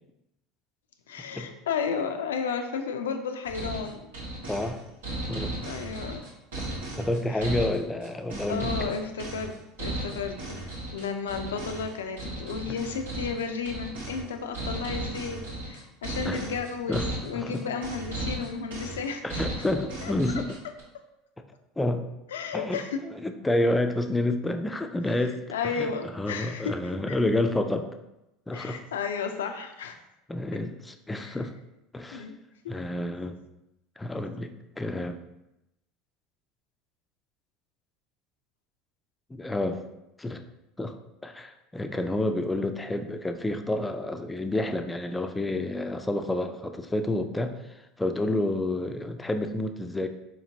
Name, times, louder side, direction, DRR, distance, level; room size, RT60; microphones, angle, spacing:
voice 1, 1.1-4.1 5.6-6.2 7.4-7.5 8.5-15.4 15.6-19.5 20.0-20.1 22.3-23.0 25.5-26.7 27.1-27.2 28.5-30.0 31.2-31.4 32.1-32.4 32.6-32.7, left 5 dB, 90° left, 6 dB, 0.4 m, -33 dB
sound 1, 3.4-20.8, right 1 dB, 90° right, 0.9 m, -35 dB
voice 2, 4.5-4.8 5.3-5.6 7.0-8.7 12.7-12.8 16.3-16.4 16.9-17.1 17.3-17.6 19.2-20.5 21.8-22.0 22.5-27.9 28.5-28.8 30.3-31.5 31.9-32.2 32.7-33.4 34.0-34.5 34.8-35.2 39.3-39.8 40.2-40.4 40.8-40.9 41.2-50.1, left 1 dB, 10° left, 7 dB, 0.4 m, -29 dB
4.2 x 2.9 x 2.7 m, 0.91 s
hypercardioid pair, 90°, 0 cm